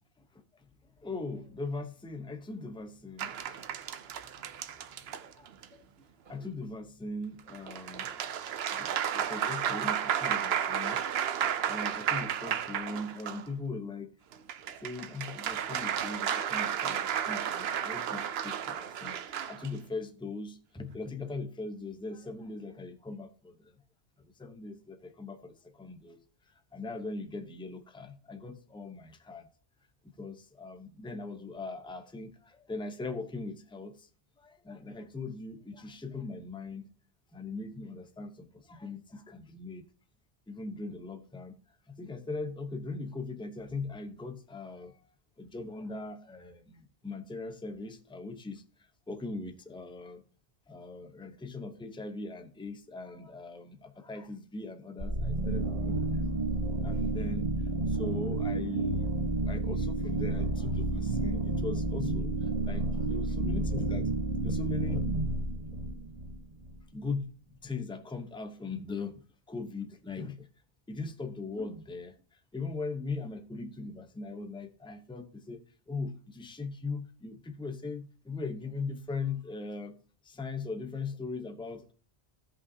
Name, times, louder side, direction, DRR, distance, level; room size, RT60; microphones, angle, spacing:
voice 1, 0.2-0.6 1.0-4.9 5.2-5.9 6.2-8.2 8.6-11.0 11.7-14.1 14.8-19.2 19.5-23.7 24.2-26.2 26.7-29.5 30.0-34.1 34.4-36.9 37.3-39.8 40.5-41.6 41.9-45.0 45.4-48.6 49.1-50.2 50.7-56.3 56.8-57.5 57.9-64.1 64.4-65.4 65.7-65.8 66.9-67.3 67.6-69.2 69.5-70.5 70.9-75.6 75.9-80.0 80.2-81.9, left 3 dB, 5° left, 0.7 m, -40 dB
sound 1, 3.2-5.7 7.5-13.5 14.3-19.7, right 9 dB, 70° right, 0.8 m, -33 dB
sound 2, 55.0-66.8, right 2 dB, 30° right, 1.1 m, -30 dB
15.5 x 5.5 x 2.8 m
omnidirectional pair, 1.1 m